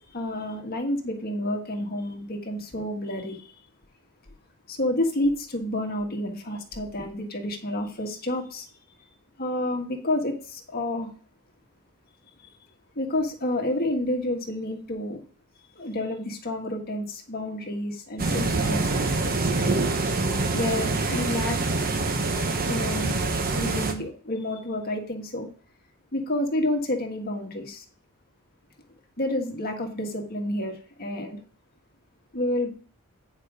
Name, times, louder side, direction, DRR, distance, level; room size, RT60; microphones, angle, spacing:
voice 1, 0.1-3.5 4.7-8.7 9.4-11.1 12.9-15.2 15.7-19.8 20.5-21.6 22.7-23.1 23.5-25.5 26.1-27.8 29.2-31.4 32.3-32.7, left 1 dB, 45° left, 1.6 m, -29 dB
sound 1, 18.2-23.9, right 3 dB, 40° right, 1.0 m, -25 dB
9.2 x 5.0 x 4.9 m
head